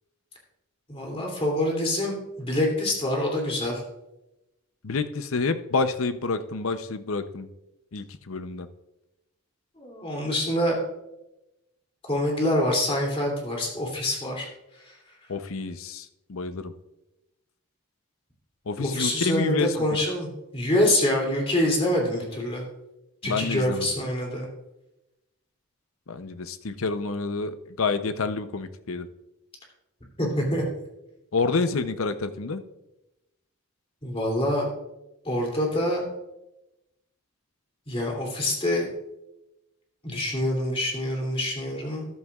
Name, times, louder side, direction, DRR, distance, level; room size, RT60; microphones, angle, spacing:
voice 1, 0.9-3.8 9.8-10.8 12.1-14.5 14.8-15.0 18.8-20.3 20.5-22.6 23.2-24.4 30.2-30.6 34.0-34.6 35.2-36.0 37.9-38.9 40.0-42.1, left 1 dB, 25° left, 0 dB, 2.8 m, -26 dB
voice 2, 4.8-7.5 7.9-8.7 15.3-16.7 18.7-19.7 23.2-23.9 26.1-29.1 31.3-32.6, left 4 dB, 70° left, 10 dB, 0.7 m, -28 dB
13.5 x 11.0 x 2.4 m, 0.93 s
head